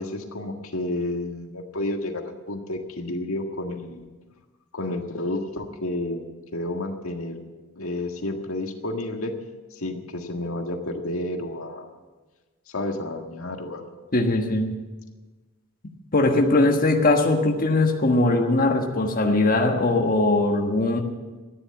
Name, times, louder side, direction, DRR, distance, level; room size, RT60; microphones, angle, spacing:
voice 1, 0.0-4.1 4.7-6.3 6.5-7.4 7.7-9.3 9.7-12.0 12.7-13.9, left 1 dB, 85° left, 3 dB, 1.8 m, -31 dB
voice 2, 14.1-14.7 15.8-21.0, left 2 dB, 45° left, 2 dB, 1.4 m, -21 dB
14.0 x 10.0 x 8.6 m, 1.3 s
head